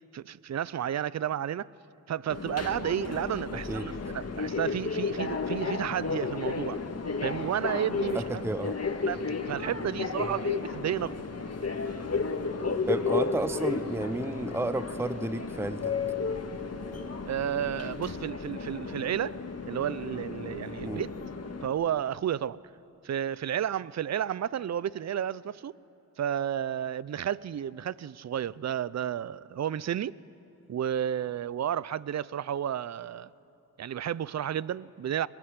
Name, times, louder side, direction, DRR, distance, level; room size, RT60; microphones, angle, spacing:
voice 1, 0.1-1.7 2.1-6.8 7.2-8.5 9.1-11.1 17.3-19.4 19.7-21.1 21.6-22.6 23.0-25.7 26.2-30.2 30.7-33.3 33.8-35.3, right 10 dB, 50° right, 0.5 m, -32 dB
Subway metro underground, 2.3-21.7, left 4 dB, 45° left, 1.7 m, -33 dB
voice 2, 8.1-8.8 10.2-10.4 12.9-15.9 20.8-21.0, right 2 dB, 5° right, 0.7 m, -32 dB
22.5 x 20.5 x 9.6 m
cardioid pair, 75°, 36 cm